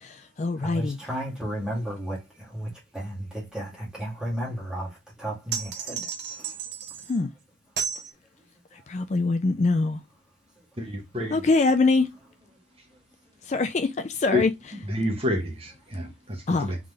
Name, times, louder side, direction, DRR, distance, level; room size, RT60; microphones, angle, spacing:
voice 1, 0.0-1.0 7.1-7.3 8.9-10.0 11.3-12.1 13.5-14.5 16.5-16.7, left 3 dB, 35° left, 0.4 m, -23 dB
voice 2, 0.6-4.9 5.2-6.0 6.4-6.5, equal, 5° right, 2.1 m, -33 dB
sound 1, 5.5-7.2 7.8-8.1, right 7 dB, 60° right, 1.0 m, -33 dB
voice 3, 10.8-11.5 14.3-14.4 14.7-16.8, left 1 dB, 30° right, 1.0 m, -29 dB
3.8 x 3.7 x 3.3 m
head